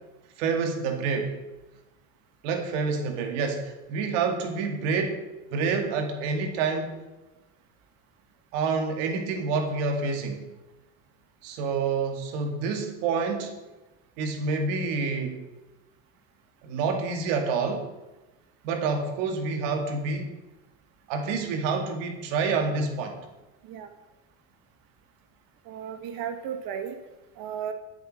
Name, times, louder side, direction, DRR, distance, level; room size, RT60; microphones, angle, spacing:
voice 1, 0.4-1.4 2.4-5.2 5.5-6.9 8.5-10.5 11.4-13.5 14.2-15.4 16.6-17.9 18.6-20.3 21.1-23.2, right 4 dB, 90° right, 4 dB, 2.3 m, -28 dB
voice 2, 25.7-27.0 27.4-27.7, right 8 dB, 70° right, 7 dB, 2.0 m, -34 dB
12.0 x 7.8 x 6.5 m, 1.0 s
supercardioid pair, 105°, 36 cm